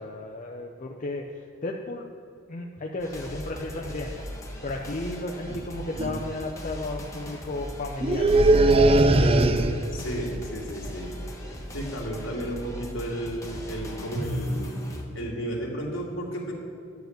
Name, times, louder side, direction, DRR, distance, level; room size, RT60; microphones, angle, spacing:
voice 1, 0.0-2.1 2.5-4.2 4.6-9.4, left 2 dB, 40° left, 1 dB, 0.6 m, -34 dB
sound 1, 3.0-15.0, equal, 15° left, 1.2 m, -39 dB
sound 2, 5.5-5.7 6.0-6.3 8.0-10.0, right 2 dB, 30° right, 0.4 m, -20 dB
voice 2, 9.9-11.1 11.7-14.8 15.1-16.5, right 1 dB, 65° left, -2 dB, 2.3 m, -32 dB
10.5 x 4.8 x 7.8 m, 2.5 s
head